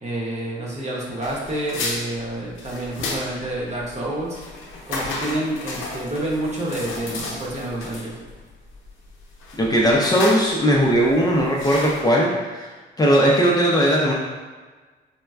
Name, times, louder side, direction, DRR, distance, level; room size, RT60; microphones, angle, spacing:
voice 1, 0.0-4.4 4.9-8.1 9.7-10.1 10.8-11.1, right 1 dB, 35° right, -4 dB, 0.9 m, -29 dB
sound 1, 1.2-12.0, left 2 dB, 85° left, 0.7 m, -32 dB
voice 2, 9.6-12.7 13.0-14.1, equal, 20° left, -4 dB, 0.5 m, -18 dB
4.1 x 2.2 x 2.3 m, 1.4 s
cardioid pair, 90°, 20 cm